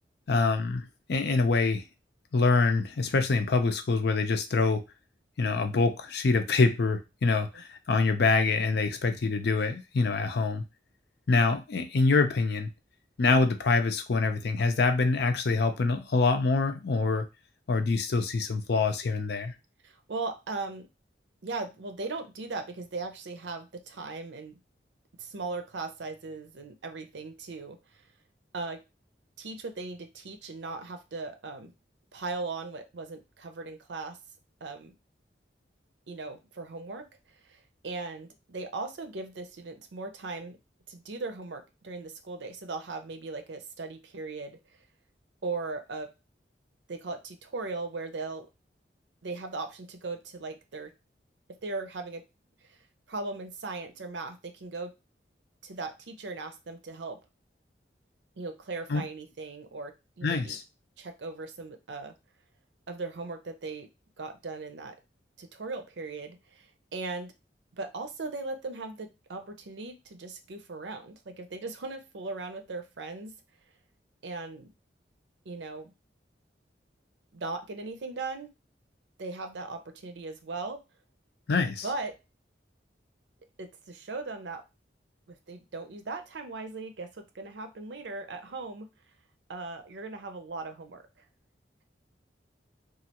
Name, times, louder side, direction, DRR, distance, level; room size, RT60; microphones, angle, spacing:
voice 1, 0.3-1.8 2.3-4.8 5.4-10.6 11.3-12.7 13.2-17.3 17.7-19.5 58.9-59.0 60.2-60.6 81.5-81.9, left 3 dB, 65° left, 0.5 m, -25 dB
voice 2, 19.8-20.9 21.4-24.6 25.2-27.8 28.5-28.8 29.4-31.7 32.1-34.2 34.6-34.9 36.1-37.1 37.5-40.6 40.9-44.6 45.4-46.1 46.9-48.5 49.2-50.9 51.6-52.2 53.1-54.9 55.6-57.2 58.4-60.6 61.0-62.1 62.9-63.9 64.2-65.0 65.4-66.7 66.9-67.3 67.8-73.3 74.2-74.7 75.5-75.9 77.3-78.5 79.2-80.8 81.8-82.2 83.6-84.6 85.3-88.9 89.5-91.0, right 3 dB, 80° right, 0.6 m, -38 dB
3.1 x 2.4 x 2.9 m
head